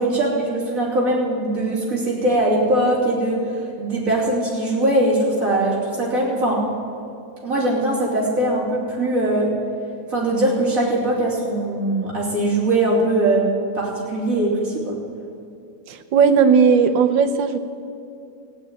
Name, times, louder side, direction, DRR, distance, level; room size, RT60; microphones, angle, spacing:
voice 1, 0.0-3.4 3.8-6.6 7.4-9.5 10.1-13.4 13.7-15.0, right 1 dB, 45° right, -4 dB, 3.6 m, -21 dB
voice 2, 15.9-17.6, right 6 dB, 85° right, 9 dB, 1.6 m, -16 dB
15.0 x 9.7 x 9.1 m, 2.6 s
omnidirectional pair, 2.0 m